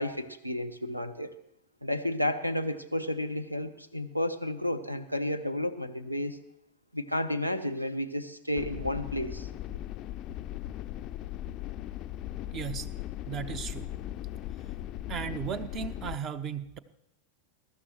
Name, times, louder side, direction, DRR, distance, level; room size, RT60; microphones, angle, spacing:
voice 1, 0.0-1.3 1.8-6.4 6.9-9.5, left 1 dB, 90° right, 14 dB, 0.9 m, -32 dB
sound 1, 8.6-16.2, left 13 dB, 35° left, 0.4 m, -38 dB
voice 2, 12.5-12.9 13.3-13.9 15.1-16.8, right 8 dB, 30° right, 13 dB, 0.8 m, -35 dB
22.5 x 13.0 x 3.1 m, 0.80 s
figure-of-eight pair, 90°, 0 cm